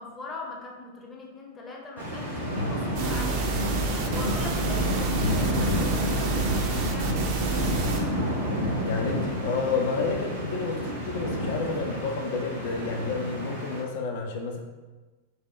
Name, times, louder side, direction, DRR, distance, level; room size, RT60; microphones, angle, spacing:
voice 1, 0.0-3.5 4.1-7.4, left 3 dB, 25° left, -1 dB, 0.7 m, -41 dB
sound 1, 2.0-13.8, equal, 85° right, 1.1 m, -29 dB
sound 2, 2.9-8.0, right 5 dB, 45° right, 0.5 m, -30 dB
voice 2, 8.8-14.6, left 4 dB, 50° left, 2 dB, 0.5 m, -30 dB
4.7 x 2.2 x 3.1 m, 1.3 s
figure-of-eight pair, 90°, 0 cm